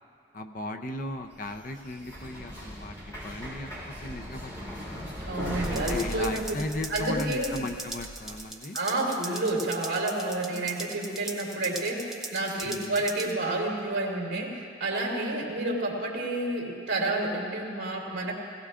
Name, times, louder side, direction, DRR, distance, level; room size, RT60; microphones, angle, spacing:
voice 1, 0.3-5.1 5.7-8.8 12.6-13.0, left 2 dB, 45° left, 7 dB, 0.6 m, -37 dB
sound 1, 1.1-8.4, equal, 15° left, 3.7 m, -38 dB
voice 2, 5.2-6.4 6.9-7.6 8.7-18.3, right 2 dB, 70° right, -3 dB, 2.7 m, -30 dB
sound 2, 5.6-13.3, right 2 dB, ahead, 0.8 m, -40 dB
18.5 x 17.5 x 2.5 m, 2.4 s
head